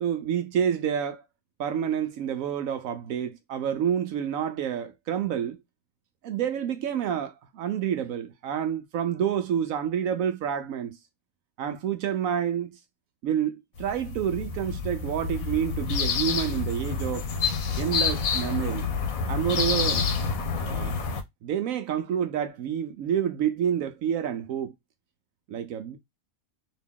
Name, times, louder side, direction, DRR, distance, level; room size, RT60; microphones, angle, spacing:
voice 1, 0.0-1.2 1.6-5.6 6.2-11.0 11.6-12.8 13.2-17.3 17.8-18.9 19.3-20.1 20.6-20.9 21.4-24.7 25.5-26.0, right 9 dB, 75° right, 1.0 m, -28 dB
sound 1, 13.8-21.2, left 5 dB, 85° left, 1.2 m, -28 dB
2.9 x 2.8 x 3.5 m
omnidirectional pair, 1.5 m